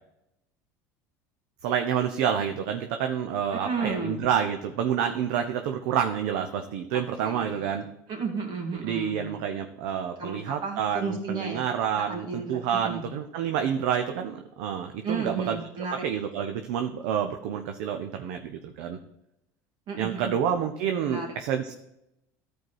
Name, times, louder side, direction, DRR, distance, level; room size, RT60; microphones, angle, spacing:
voice 1, 1.6-7.9 8.7-15.6 16.0-19.0 20.0-21.7, right 8 dB, 70° right, 6 dB, 0.7 m, -28 dB
voice 2, 3.5-4.2 6.9-7.8 8.1-9.4 10.2-11.6 12.0-13.1 15.0-16.0 19.9-20.3 21.0-21.3, right 4 dB, 55° right, -1 dB, 2.7 m, -33 dB
13.5 x 4.6 x 4.7 m, 0.86 s
hypercardioid pair, 80°, 9 cm